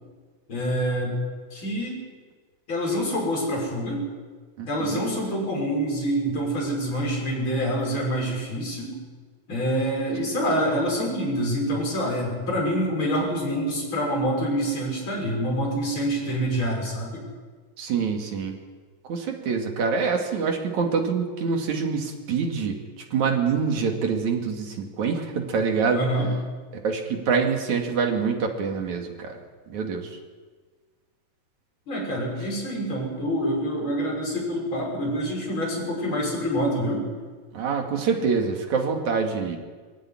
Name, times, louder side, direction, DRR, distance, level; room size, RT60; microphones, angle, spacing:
voice 1, 0.5-1.2 1.5-2.0 2.7-4.1 4.7-9.0 9.5-17.2 25.9-26.3 31.9-37.1, equal, 35° left, -2 dB, 7.4 m, -26 dB
voice 2, 4.6-5.0 17.8-18.6 19.1-22.8 23.1-26.0 26.7-29.4 29.7-30.1 37.5-39.6, right 5 dB, 60° right, 3 dB, 3.6 m, -25 dB
22.0 x 15.5 x 10.0 m, 1.4 s
omnidirectional pair, 3.9 m